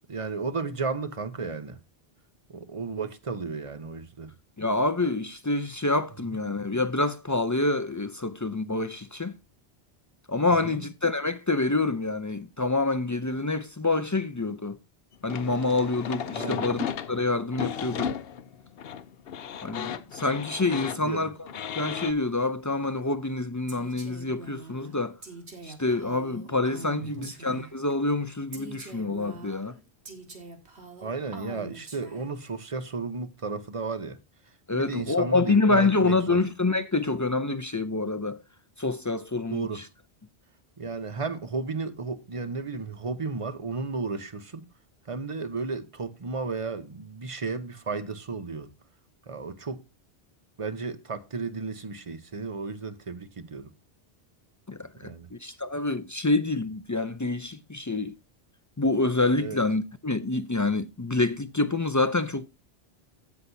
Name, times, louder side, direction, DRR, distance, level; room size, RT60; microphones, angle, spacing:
voice 1, 0.1-1.8 2.5-4.3 6.3-6.4 10.5-10.9 16.3-16.7 20.9-21.3 27.0-27.3 31.0-34.2 34.7-36.4 39.5-39.9 40.8-44.7 45.1-48.7 49.3-49.8 50.6-53.7 55.0-55.3 59.4-59.6, right 4 dB, 35° right, 0.8 m, -33 dB
voice 2, 4.6-9.3 10.3-14.8 15.2-18.1 19.6-21.3 21.7-25.2 25.6-29.7 34.7-38.4 38.8-39.8 54.7-58.1 58.8-62.5, left 3 dB, 25° left, 0.4 m, -27 dB
sound 1, 15.3-22.1, left 8 dB, 65° left, 0.8 m, -34 dB
Female speech woman speaking, 23.7-27.9 28.5-32.5, right 3 dB, 90° right, 2.2 m, -44 dB
16.0 x 5.9 x 2.6 m
omnidirectional pair, 1.1 m